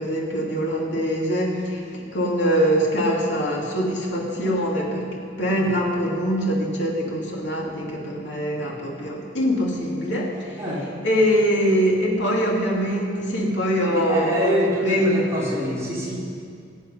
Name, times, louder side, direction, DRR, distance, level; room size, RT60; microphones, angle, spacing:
voice 1, 0.0-10.6 11.0-15.2, equal, 80° left, -2 dB, 2.7 m, -23 dB
voice 2, 13.9-16.2, equal, 15° right, -7 dB, 3.8 m, -26 dB
21.0 x 8.7 x 5.5 m, 2.3 s
head